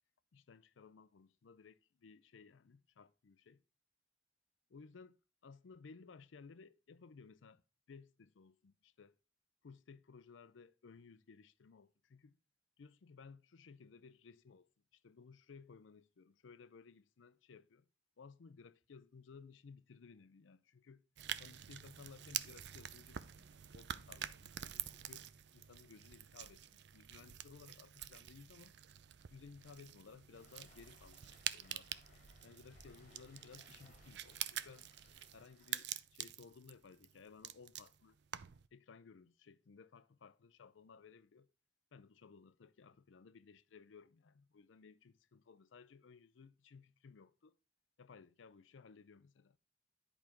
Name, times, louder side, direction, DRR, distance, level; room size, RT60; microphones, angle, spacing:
voice 1, 0.3-3.6 4.7-7.6 7.9-9.2 9.6-12.4 12.8-17.9 18.2-21.0 21.4-23.5 23.7-25.3 25.5-28.7 29.3-32.0 32.4-34.9 35.3-38.2 38.7-41.5 41.9-47.5 48.0-49.6, left 5 dB, 85° left, 0.5 m, -59 dB
sound 1, 21.2-38.7, right 11 dB, 65° right, 0.5 m, -47 dB
Waves surf, 30.3-35.8, left 2 dB, 40° left, 2.4 m, -65 dB
10.5 x 5.0 x 4.5 m
head